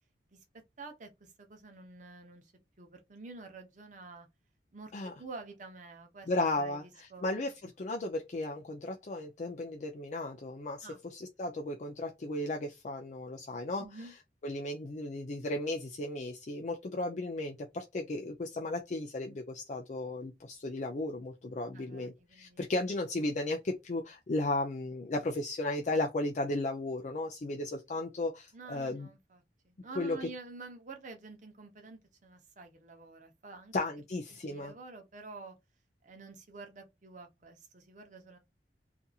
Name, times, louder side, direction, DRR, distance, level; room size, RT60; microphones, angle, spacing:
voice 1, 0.8-2.5 2.8-4.3 4.7-6.3 6.6-7.3 10.8-11.0 13.8-14.1 21.7-22.7 28.5-33.7 34.4-35.6 36.0-38.4, right 3 dB, 45° right, 0.7 m, -49 dB
voice 2, 6.3-6.8 7.2-13.8 14.4-29.1 30.0-30.2 33.7-34.7, left 2 dB, 40° left, 0.4 m, -35 dB
2.7 x 2.4 x 2.3 m
head